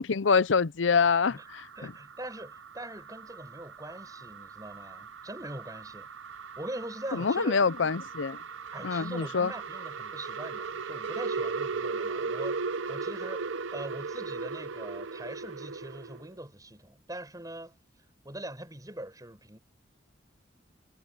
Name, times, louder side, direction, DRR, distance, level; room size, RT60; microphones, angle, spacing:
voice 1, 0.0-1.9 7.1-8.4 8.8-9.5, left 5 dB, 75° left, 0.6 m, -26 dB
sound 1, 1.1-16.3, right 4 dB, 80° right, 0.7 m, -38 dB
voice 2, 1.7-6.1 6.6-7.6 8.7-17.8 18.2-19.6, right 1 dB, 20° right, 7.9 m, -42 dB
head